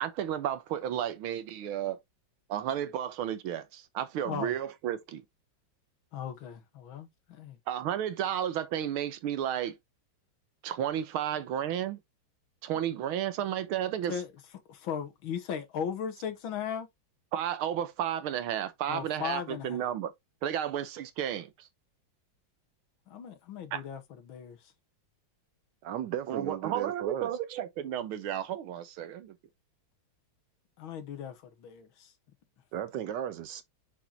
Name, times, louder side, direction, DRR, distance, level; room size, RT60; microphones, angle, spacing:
voice 1, 0.0-2.0 2.5-5.2 7.7-9.8 10.6-12.0 12.6-14.1 17.3-20.1 20.4-21.5 23.7-23.8 26.3-29.4, right 10 dB, 85° right, 1.7 m, -32 dB
voice 2, 6.1-7.6 14.1-14.3 14.7-16.9 18.9-19.9 23.1-24.7 30.8-32.1, left 8 dB, 75° left, 2.0 m, -37 dB
voice 3, 25.8-27.3 32.7-33.6, right 10 dB, 70° right, 1.2 m, -35 dB
6.3 x 5.7 x 2.7 m
omnidirectional pair, 2.2 m